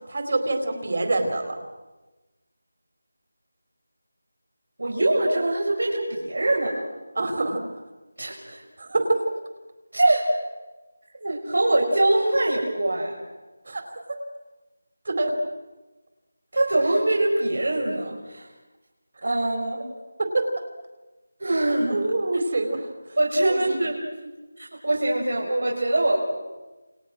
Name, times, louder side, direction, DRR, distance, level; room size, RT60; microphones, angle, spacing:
voice 1, 0.0-1.6 7.2-7.6 8.8-9.2 13.7-13.8 15.1-15.3 20.2-20.4 21.9-22.9 23.5-23.8, right 2 dB, 40° right, 6 dB, 4.2 m, -25 dB
voice 2, 4.8-6.9 8.2-8.6 9.9-10.2 11.2-13.2 16.5-18.5 19.2-19.8 21.4-22.0 23.2-24.0 24.6-26.3, right 1 dB, 75° right, -2 dB, 7.3 m, -23 dB
29.0 x 28.5 x 6.3 m, 1.1 s
figure-of-eight pair, 180°, 0 cm